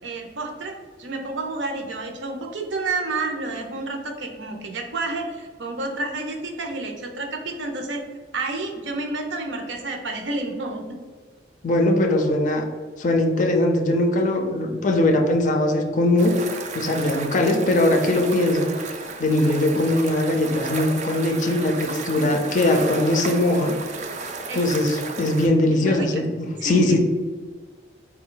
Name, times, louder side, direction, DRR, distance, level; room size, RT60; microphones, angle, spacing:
voice 1, 0.0-8.0 8.3-11.0 24.5-24.8 25.8-26.2 26.6-27.0, right 2 dB, 80° right, 3 dB, 0.6 m, -30 dB
voice 2, 11.6-12.7 13.0-16.4 16.7-18.7 19.2-23.8 24.5-27.0, left 1 dB, 45° left, 4 dB, 0.4 m, -20 dB
sound 1, 16.2-25.5, right 4 dB, 40° right, 0.3 m, -33 dB
4.0 x 2.3 x 3.8 m, 1.5 s
head